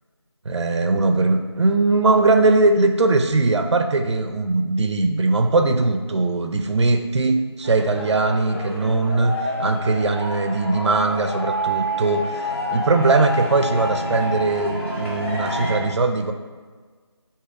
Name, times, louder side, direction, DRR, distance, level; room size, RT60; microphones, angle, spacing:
voice 1, 0.5-9.3 9.6-16.3, right 3 dB, 80° right, 6 dB, 0.4 m, -20 dB
sound 1, 7.6-15.8, equal, 25° left, 0.8 m, -28 dB
4.8 x 2.7 x 2.4 m, 1.5 s
figure-of-eight pair, 175°, 15 cm